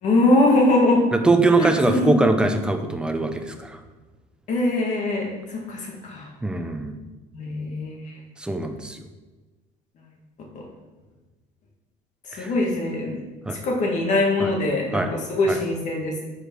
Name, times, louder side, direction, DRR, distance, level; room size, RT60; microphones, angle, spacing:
voice 1, 0.0-1.0 1.6-2.3 4.5-6.3 7.3-8.1 12.3-13.2 13.5-16.2, left 2 dB, 45° left, 0 dB, 1.7 m, -22 dB
voice 2, 1.1-3.8 6.4-7.0 8.4-9.1 12.4-12.5 13.4-13.6 14.4-14.5 14.9-15.1 15.5-15.6, right 2 dB, 5° right, 5 dB, 0.5 m, -22 dB
4.9 x 4.9 x 6.0 m, 1.2 s
cardioid pair, 135°, 17 cm